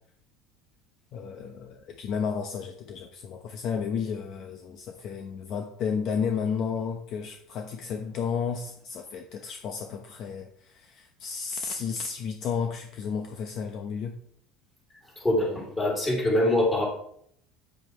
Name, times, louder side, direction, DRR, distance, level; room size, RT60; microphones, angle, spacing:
voice 1, 1.1-14.2, left 6 dB, 45° left, 4 dB, 1.0 m, -32 dB
voice 2, 15.2-16.9, left 1 dB, 15° left, -2 dB, 3.7 m, -24 dB
9.4 x 8.2 x 3.3 m, 0.66 s
cardioid pair, 150°, 0 cm